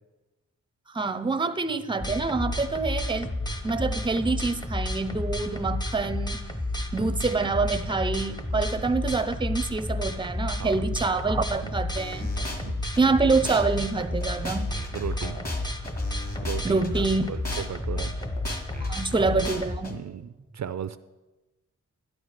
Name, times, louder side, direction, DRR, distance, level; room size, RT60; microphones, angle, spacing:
voice 1, 0.9-3.3 3.6-6.4 6.9-12.3 13.0-14.7 16.6-17.3 18.8-20.0, right 3 dB, 15° right, 11 dB, 0.6 m, -26 dB
sound 1, 2.0-19.8, left 1 dB, 15° left, 1.0 m, -31 dB
voice 2, 10.5-10.9 11.6-11.8 12.6-12.8 14.9-15.4 16.1-18.2 18.9-19.0 19.9-21.0, right 9 dB, 60° right, 13 dB, 0.5 m, -36 dB
sound 2, 12.0-13.0 13.5-13.6 14.0-17.0 17.5-17.6 18.0-19.9, left 2 dB, 30° left, 1.9 m, -37 dB
12.0 x 11.0 x 4.9 m, 1.1 s
wide cardioid pair, 95°, 31 cm